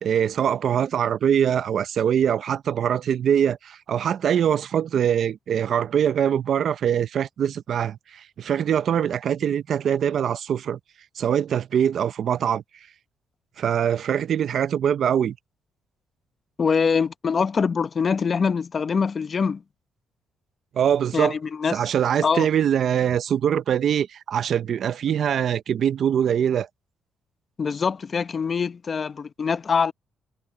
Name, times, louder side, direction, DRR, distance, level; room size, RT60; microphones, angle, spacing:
voice 1, 0.0-10.8 11.2-12.6 13.6-15.4 20.7-21.4 21.7-26.7, right 9 dB, 60° right, 0.6 m, -23 dB
voice 2, 16.6-19.6 21.1-21.8 22.2-22.5 27.6-29.9, left 5 dB, 40° left, 0.9 m, -24 dB
cardioid pair, 90°, 0 cm